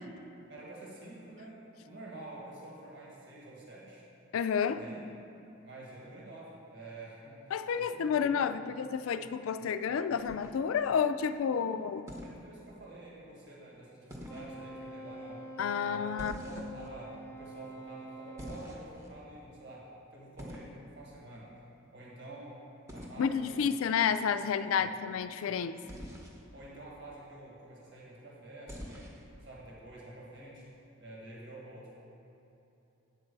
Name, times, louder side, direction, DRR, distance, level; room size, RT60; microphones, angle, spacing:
voice 1, 0.5-4.0 4.7-5.0 5.6-7.4 7.7-8.7 10.9-11.0 11.5-11.8 12.2-15.5 15.8-21.5 21.9-22.6 22.9-23.7 24.7-24.9 25.4-25.6 25.8-26.0 26.5-29.1 29.4-30.7 31.0-31.9, right 1 dB, 60° right, -5 dB, 1.7 m, -48 dB
voice 2, 4.3-4.8 7.5-12.1 15.6-16.3 23.2-25.8, left 7 dB, 90° left, 12 dB, 0.4 m, -30 dB
sound 1, 10.2-10.9 12.1-12.4 14.1-14.5 16.2-16.9 18.4-19.1 20.4-20.7 22.9-23.2 25.9-26.4 28.7-29.2, equal, 15° right, 0.9 m, -45 dB
Wind instrument woodwind instrument, 14.2-18.7, right 1 dB, 10° left, 0.5 m, -46 dB
9.2 x 4.5 x 6.7 m, 2.9 s
head